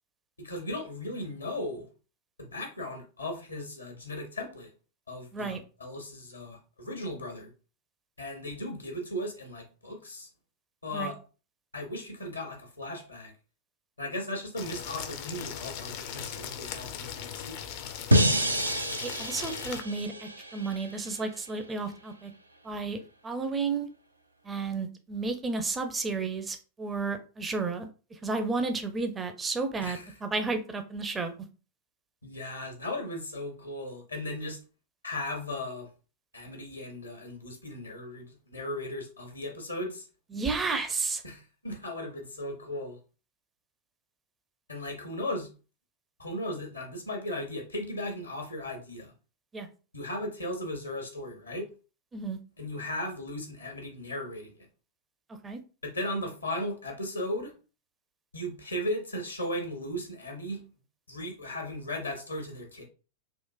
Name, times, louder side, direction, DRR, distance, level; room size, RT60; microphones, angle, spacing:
voice 1, 0.4-1.9 2.4-4.7 5.1-7.5 8.2-10.3 10.8-11.2 11.7-13.3 14.0-17.6 29.8-30.1 32.2-34.6 35.0-35.9 36.3-40.1 41.2-43.0 44.7-45.5 46.2-49.1 49.9-51.7 52.6-54.6 55.8-57.5 58.3-60.6 61.1-62.8, left 1 dB, 80° left, 2 dB, 0.9 m, -36 dB
sound 1, 14.6-19.8, left 8 dB, 45° left, 0.4 m, -39 dB
sound 2, 18.1-21.2, equal, 80° right, 0.4 m, -27 dB
voice 2, 19.0-22.3 22.6-23.9 24.4-31.3 40.3-41.2 49.5-49.7 52.1-52.4 55.4-55.6, right 4 dB, 15° right, 7 dB, 0.5 m, -32 dB
3.7 x 2.4 x 2.3 m, 0.34 s
figure-of-eight pair, 90°, 0 cm